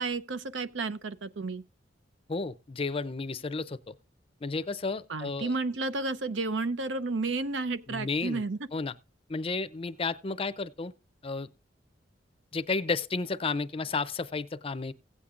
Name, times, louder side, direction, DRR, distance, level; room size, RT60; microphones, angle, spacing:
voice 1, 0.0-1.6 5.1-8.6, right 3 dB, 75° right, 0.7 m, -32 dB
voice 2, 2.3-4.0 4.4-5.5 7.9-8.4 8.7-8.9 9.3-10.9 11.2-11.5 12.5-14.9, left 4 dB, 30° left, 0.5 m, -32 dB
16.5 x 8.4 x 2.5 m
head